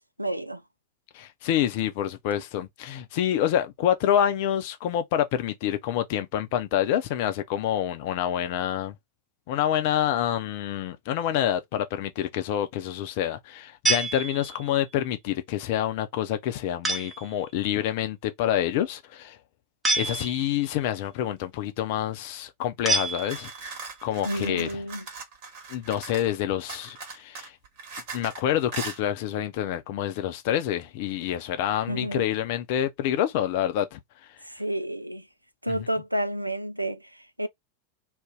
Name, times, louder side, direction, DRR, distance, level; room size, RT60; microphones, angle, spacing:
voice 1, 0.2-0.6 24.2-25.0 31.9-32.3 34.4-35.3 35.6-37.5, right 1 dB, 90° right, 0.3 m, -30 dB
voice 2, 1.1-9.0 9.5-19.4 20.0-23.5 24.0-24.8 25.7-27.5 28.1-34.0 35.7-35.9, left 11 dB, 50° left, 0.5 m, -27 dB
sound 1, 13.9-14.8 16.8-17.3 19.8-20.7 22.9-23.7, right 3 dB, 10° right, 0.8 m, -28 dB
sound 2, 23.0-26.3 26.7-28.4 28.7-29.0, right 4 dB, 45° right, 1.2 m, -39 dB
2.6 x 2.2 x 3.6 m
figure-of-eight pair, 90°, 0 cm